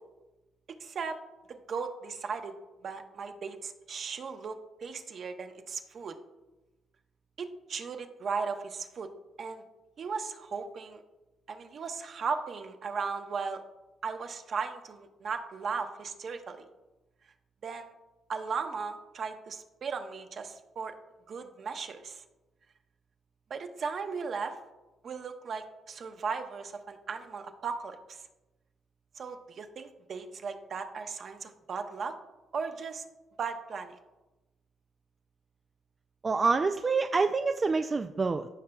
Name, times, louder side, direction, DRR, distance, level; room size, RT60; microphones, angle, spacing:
voice 1, 0.8-1.2 1.5-2.5 2.8-4.6 4.8-6.2 7.4-9.1 9.4-9.6 10.0-11.0 11.5-13.6 14.0-16.6 17.6-17.9 18.3-20.9 21.3-22.2 23.5-24.6 25.0-28.2 29.2-32.1 32.5-33.0 33.4-34.0, right 5 dB, 55° right, 6 dB, 0.9 m, -36 dB
voice 2, 36.2-38.5, right 4 dB, 30° right, 7 dB, 0.3 m, -27 dB
15.0 x 5.5 x 2.3 m, 1.1 s
cardioid pair, 90°, 0 cm